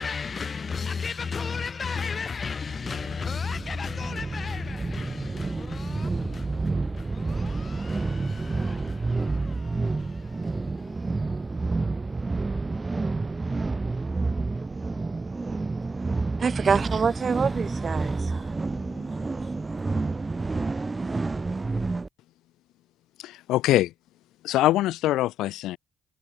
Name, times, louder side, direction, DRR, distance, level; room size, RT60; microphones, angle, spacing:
voice 1, 0.0-11.6 18.0-19.5, left 5 dB, 40° left, 2.8 m, -35 dB
sound 1, 2.6-22.1, right 3 dB, 25° right, 0.3 m, -29 dB
voice 2, 16.4-18.5, right 6 dB, 40° right, 1.0 m, -26 dB
voice 3, 23.2-23.9 24.4-25.8, left 15 dB, 90° left, 0.3 m, -23 dB
cardioid pair, 90°, 0 cm